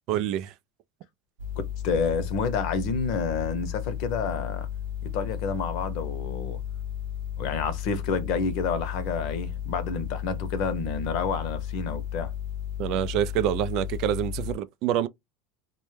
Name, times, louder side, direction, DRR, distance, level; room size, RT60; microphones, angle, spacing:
voice 1, 0.1-0.5 12.8-15.1, right 11 dB, 60° right, 0.3 m, -26 dB
sound 1, 1.4-14.5, left 10 dB, 75° right, 0.7 m, -34 dB
voice 2, 1.8-4.7 5.0-6.6 7.4-12.3, left 5 dB, 65° left, 0.7 m, -29 dB
2.1 x 2.0 x 3.2 m
hypercardioid pair, 100°, 0 cm